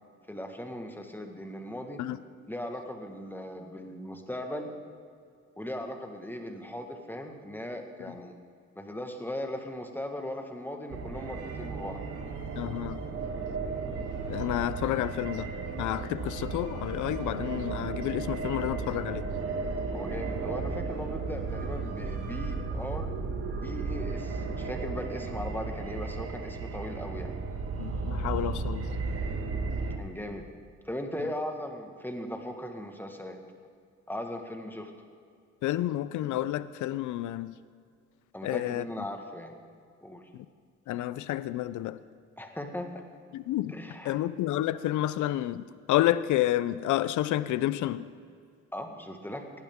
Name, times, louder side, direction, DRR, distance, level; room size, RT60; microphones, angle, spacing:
voice 1, 0.3-2.0 2.5-4.7 5.6-8.3 8.7-12.0 19.9-23.1 23.6-27.4 30.0-30.5 30.8-33.4 34.1-34.9 38.3-39.6 40.0-40.2 42.4-43.0 43.7-44.2 48.7-49.5, left 1 dB, 5° left, 4 dB, 1.5 m, -38 dB
sound 1, 10.9-30.0, right 4 dB, 50° right, 1.5 m, -34 dB
sound 2, 11.3-22.5, right 2 dB, 85° right, 3.7 m, -53 dB
voice 2, 12.6-13.0 14.3-15.5 15.8-19.2 27.8-28.9 35.6-37.6 38.4-38.8 40.9-42.0 43.3-43.8 44.0-48.1, left 14 dB, 80° left, 16 dB, 0.5 m, -30 dB
18.5 x 11.5 x 3.7 m, 2.3 s
cardioid pair, 90°, 30 cm